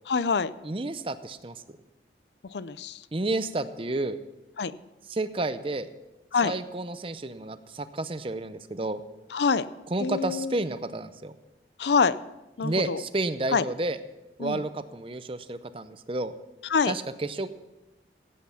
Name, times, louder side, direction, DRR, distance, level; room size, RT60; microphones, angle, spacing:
voice 1, 0.1-0.5 2.5-3.0 4.6-4.7 6.3-6.5 9.3-9.7 10.0-10.6 11.8-12.2 12.6-13.0 13.5-13.6 14.4-14.6 16.7-16.9, left 5 dB, 75° left, 16 dB, 0.5 m, -25 dB
voice 2, 0.6-1.8 3.1-4.2 5.1-5.9 6.4-9.0 9.9-11.3 12.6-14.0 14.4-16.3 16.9-17.5, right 2 dB, 30° right, 12 dB, 0.6 m, -31 dB
16.5 x 8.5 x 5.7 m, 1.0 s
head